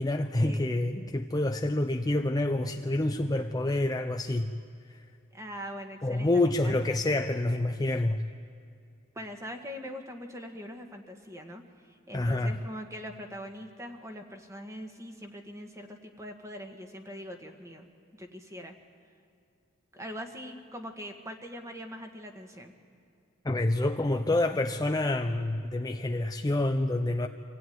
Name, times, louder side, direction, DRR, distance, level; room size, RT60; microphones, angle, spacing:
voice 1, 0.0-4.5 6.0-8.2 12.1-12.6 23.4-27.3, left 2 dB, 20° left, 5 dB, 0.5 m, -27 dB
voice 2, 5.3-7.0 9.1-17.9 18.2-18.7 19.9-22.7, equal, 15° right, 4 dB, 1.6 m, -42 dB
25.0 x 16.0 x 9.4 m, 2.5 s
head